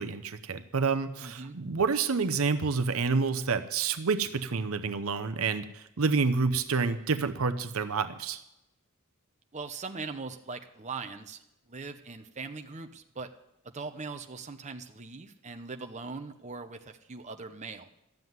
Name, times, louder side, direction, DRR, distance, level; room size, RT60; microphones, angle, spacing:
voice 1, 0.0-8.4, right 4 dB, 70° right, 9 dB, 0.8 m, -28 dB
voice 2, 1.2-1.6 9.5-13.3 13.6-17.9, right 4 dB, 35° right, 6 dB, 0.9 m, -41 dB
13.5 x 7.8 x 9.3 m, 0.88 s
head